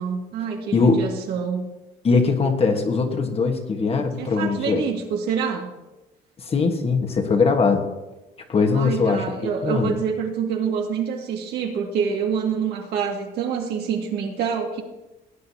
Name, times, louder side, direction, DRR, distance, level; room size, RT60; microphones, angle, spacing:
voice 1, 0.0-1.6 4.2-5.7 8.7-14.8, right 6 dB, 80° right, 1 dB, 2.2 m, -26 dB
voice 2, 0.7-1.0 2.0-4.8 6.5-7.8 8.5-9.2 9.6-9.9, left 4 dB, 35° left, 5 dB, 1.5 m, -20 dB
18.0 x 9.2 x 2.9 m, 1.0 s
cardioid pair, 110°, 17 cm